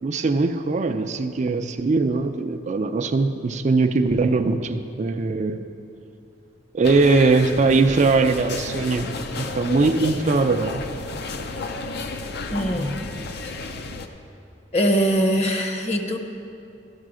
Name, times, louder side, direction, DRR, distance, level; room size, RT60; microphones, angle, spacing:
voice 1, 0.0-5.6 6.7-9.1 9.4-10.8, right 3 dB, 40° right, 7 dB, 0.4 m, -21 dB
sound 1, 6.8-14.1, left 3 dB, 60° left, 0.6 m, -32 dB
voice 2, 12.5-13.0 14.7-16.2, equal, 35° left, 5 dB, 0.9 m, -22 dB
14.0 x 5.6 x 6.2 m, 2.6 s
head